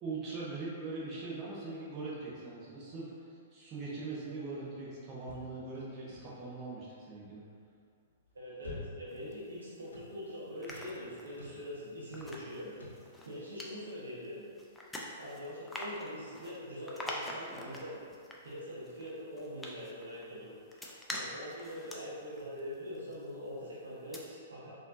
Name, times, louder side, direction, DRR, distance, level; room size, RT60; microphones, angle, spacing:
voice 1, 0.0-3.1 3.5-7.4, right 3 dB, 30° right, -7 dB, 1.0 m, -41 dB
sound 1, 5.2-6.6 8.1-9.2 9.5-10.1 10.6-10.9 11.3-11.6 12.1-12.4 12.7-13.1, left 1 dB, 80° left, 0.7 m, -49 dB
voice 2, 8.3-13.0 13.3-14.4 15.1-18.0 18.4-24.7, equal, 75° right, -8 dB, 1.0 m, -43 dB
sound 2, 9.1-10.0 10.4-23.6 23.9-24.2, left 1 dB, 5° left, 0.4 m, -46 dB
4.1 x 2.7 x 2.6 m, 2.3 s
figure-of-eight pair, 110°, 0 cm